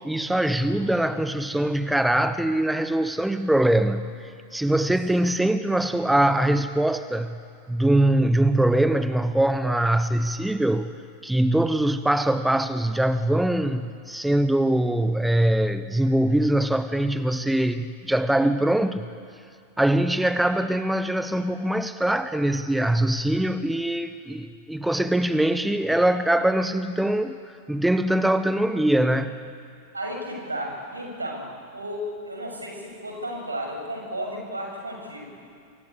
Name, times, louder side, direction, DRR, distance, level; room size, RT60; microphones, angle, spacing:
voice 1, 0.0-4.1 4.5-7.4 7.7-10.9 11.2-19.1 19.8-29.4, right 1 dB, 5° right, 11 dB, 1.0 m, -22 dB
voice 2, 29.9-35.3, equal, 80° right, 1 dB, 7.2 m, -33 dB
27.0 x 23.5 x 8.5 m, 2.4 s
figure-of-eight pair, 90°, 0 cm